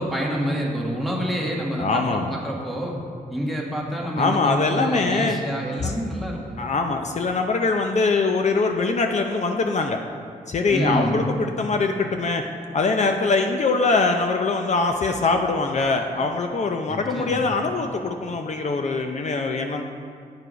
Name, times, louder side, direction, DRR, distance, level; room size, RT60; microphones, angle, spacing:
voice 1, 0.0-3.0 3.3-6.6 10.7-11.2 16.9-17.5, equal, ahead, -2 dB, 1.4 m, -27 dB
voice 2, 1.8-2.3 4.2-5.4 5.8-6.0 6.6-10.0 10.5-12.4 12.7-19.8, left 3 dB, 50° left, 4 dB, 0.5 m, -23 dB
9.5 x 4.8 x 5.0 m, 2.2 s
wide cardioid pair, 110°, 15 cm